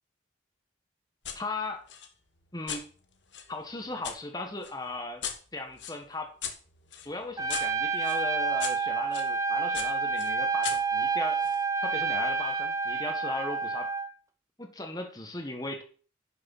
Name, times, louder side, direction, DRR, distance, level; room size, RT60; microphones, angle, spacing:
sound 1, 1.2-1.4 1.9-4.2 4.6-9.3 9.7-11.6, left 8 dB, 80° left, 1.6 m, -40 dB
voice 1, 1.3-1.8 2.5-2.9 3.5-5.2 5.5-6.3 7.0-11.4 11.8-13.9 14.6-15.8, left 2 dB, 20° left, 5 dB, 1.6 m, -37 dB
Trumpet, 7.4-14.1, right 4 dB, 20° right, 0.9 m, -29 dB
10.5 x 6.7 x 5.5 m, 0.40 s
head